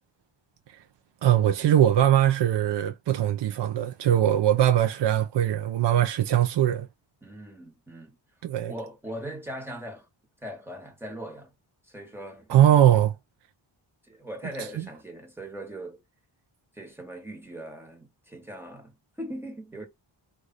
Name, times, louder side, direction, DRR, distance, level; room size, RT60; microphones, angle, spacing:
voice 1, 1.2-6.9 8.4-8.7 12.5-13.1 14.6-14.7, right 11 dB, 65° right, 0.6 m, -21 dB
voice 2, 7.2-8.2 8.7-10.1 10.4-11.5 11.8-12.6 14.0-16.0 16.7-19.9, right 1 dB, 5° right, 1.2 m, -40 dB
4.8 x 2.5 x 4.0 m
wide cardioid pair, 175°, 45 cm